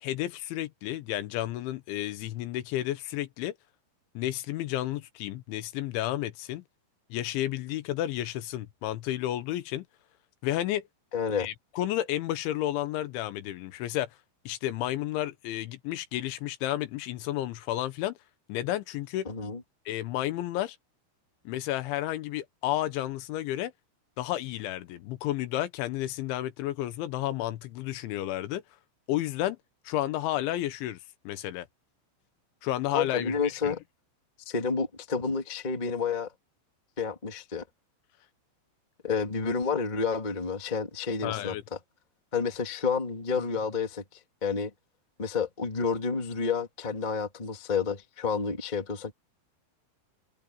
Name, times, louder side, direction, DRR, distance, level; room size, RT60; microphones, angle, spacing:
voice 1, 0.0-3.5 4.1-6.6 7.1-9.8 10.4-10.8 11.4-14.1 14.5-18.1 18.5-19.3 19.9-20.8 21.5-23.7 24.2-28.6 29.1-29.6 29.8-31.0 31.2-31.7 32.6-33.3 33.6-33.7 41.2-41.6, left 14 dB, 75° left, 3.3 m, -31 dB
voice 2, 11.1-11.5 19.2-19.6 32.9-33.8 34.4-36.3 37.0-37.6 39.0-41.5 42.3-44.0 44.4-44.7 45.2-49.1, left 5 dB, 40° left, 0.6 m, -30 dB
omnidirectional pair, 5.8 m